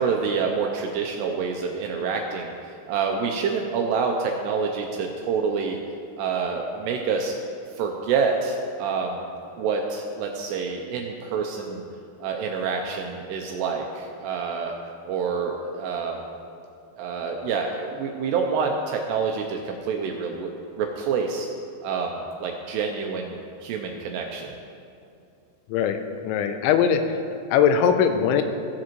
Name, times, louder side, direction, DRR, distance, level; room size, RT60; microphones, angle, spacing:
voice 1, 0.0-5.8 6.2-7.3 7.8-9.3 9.6-11.8 12.2-14.7 15.1-16.3 17.0-20.5 20.8-21.5 21.8-23.4 23.6-24.6, right 5 dB, 85° right, 2 dB, 2.5 m, -27 dB
voice 2, 25.7-27.2 27.5-28.4, left 7 dB, 85° left, 7 dB, 2.9 m, -21 dB
16.5 x 7.5 x 3.0 m, 2.5 s
omnidirectional pair, 5.3 m